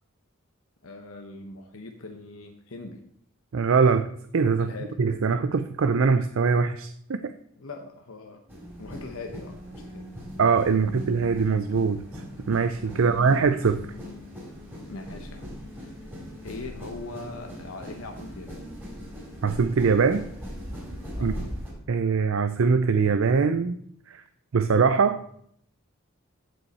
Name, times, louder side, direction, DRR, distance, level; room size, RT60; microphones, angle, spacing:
voice 1, 0.8-3.1 4.6-5.0 7.6-8.4 8.8-10.2 12.9-13.2 14.9-15.5 15.7-16.1 16.4-18.6 21.2-21.5, left 3 dB, 75° left, 4 dB, 0.9 m, -41 dB
voice 2, 3.5-4.7 5.0-7.3 10.4-12.0 12.5-13.8 19.4-20.3 21.2-21.3 21.9-23.8 24.1-24.2 24.5-25.2, right 5 dB, 65° right, 10 dB, 0.5 m, -22 dB
sound 1, 8.5-21.7, equal, 10° right, 3.8 m, -40 dB
15.0 x 5.5 x 4.2 m, 0.68 s
head